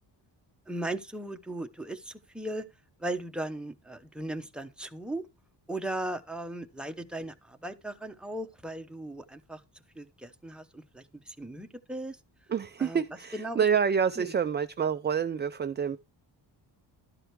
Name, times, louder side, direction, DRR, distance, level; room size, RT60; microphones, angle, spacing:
voice 1, 0.7-2.6 3.0-5.3 5.7-9.6 10.0-12.2 12.8-13.0 13.3-13.6 14.2-14.3, right 1 dB, ahead, 0.8 m, -37 dB
voice 2, 12.5-16.0, right 7 dB, 25° right, 0.4 m, -27 dB
12.5 x 4.9 x 4.6 m
wide cardioid pair, 125°, 43 cm